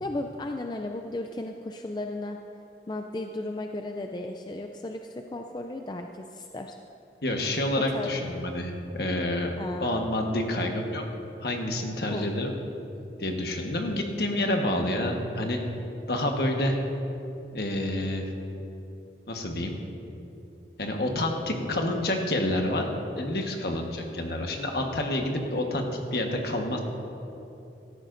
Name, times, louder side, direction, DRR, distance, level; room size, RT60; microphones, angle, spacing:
voice 1, 0.0-2.4 2.9-6.8 7.7-8.1 9.6-9.9 12.1-12.3, left 2 dB, 25° left, 4 dB, 0.4 m, -35 dB
voice 2, 7.2-9.5 9.8-11.0 11.4-12.5 13.2-15.6 16.1-16.8 17.5-18.3 19.3-19.7 20.8-22.9 23.1-26.8, left 1 dB, 60° left, 2 dB, 1.3 m, -28 dB
17.0 x 13.5 x 2.6 m, 2.8 s
head